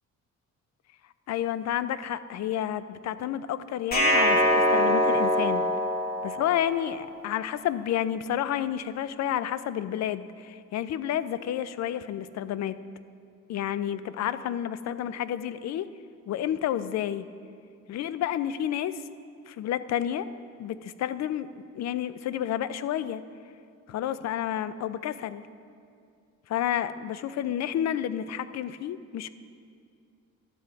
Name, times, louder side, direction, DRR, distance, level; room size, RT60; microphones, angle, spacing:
voice 1, 1.3-5.6 6.2-12.8 13.5-15.9 16.3-17.3 17.9-19.0 19.5-20.3 20.6-23.2 23.9-25.4 26.5-29.3, left 10 dB, 60° left, 14 dB, 0.5 m, -30 dB
sound 1, 3.9-7.0, equal, 30° left, 1.6 m, -23 dB
11.5 x 7.6 x 4.6 m, 2.4 s
cardioid pair, 90°, 30 cm